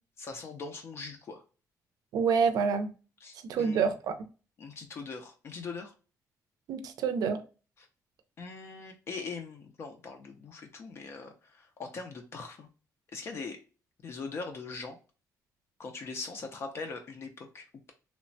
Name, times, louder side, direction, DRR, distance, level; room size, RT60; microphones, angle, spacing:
voice 1, 0.2-1.4 3.2-3.9 4.6-5.9 7.8-7.9 8.4-12.7 13.1-13.6 14.0-15.0 15.8-17.9, left 4 dB, 40° left, 0.4 m, -41 dB
voice 2, 2.1-2.9 3.5-4.2 6.7-7.4, right 6 dB, 75° right, 0.4 m, -27 dB
3.0 x 2.1 x 2.6 m
cardioid pair, 165°, 7 cm